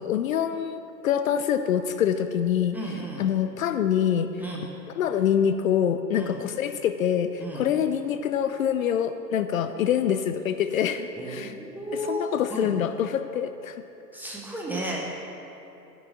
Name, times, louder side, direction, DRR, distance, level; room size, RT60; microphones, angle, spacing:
voice 1, 0.0-2.8 3.2-4.3 4.9-11.5 11.9-13.8, left 9 dB, 55° left, 10 dB, 0.5 m, -25 dB
voice 2, 2.7-3.3 4.4-4.7 6.2-6.4 7.4-7.6 11.1-12.7 14.1-15.0, right 1 dB, 5° right, -3 dB, 0.6 m, -33 dB
7.1 x 5.9 x 7.3 m, 2.9 s
figure-of-eight pair, 110°, 49 cm